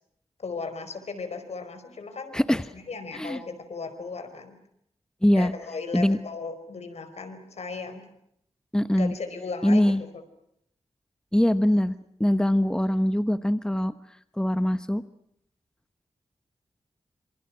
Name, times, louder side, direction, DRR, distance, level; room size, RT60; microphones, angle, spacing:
voice 1, 0.4-2.4 2.7-4.6 5.3-8.1 8.9-10.2, left 4 dB, 80° left, 9 dB, 4.8 m, -36 dB
voice 2, 5.2-5.5 5.9-6.2 8.7-9.1 9.6-10.0 11.3-13.9 14.4-15.0, left 1 dB, 5° left, 11 dB, 1.1 m, -22 dB
27.0 x 27.0 x 6.3 m, 0.73 s
wide cardioid pair, 95°, 11 cm